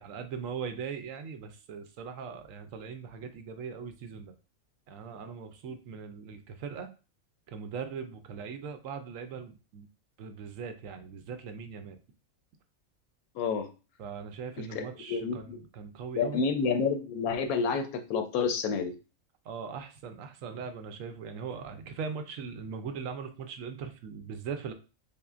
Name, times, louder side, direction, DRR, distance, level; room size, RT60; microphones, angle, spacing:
voice 1, 0.0-4.3 4.9-6.9 7.5-9.9 10.2-12.0 14.0-16.5 19.4-24.7, right 6 dB, 70° right, 7 dB, 0.9 m, -40 dB
voice 2, 13.3-13.7 14.6-15.6 16.1-19.0, left 5 dB, 90° left, 6 dB, 1.1 m, -29 dB
5.4 x 2.1 x 2.4 m, 0.33 s
omnidirectional pair, 1.5 m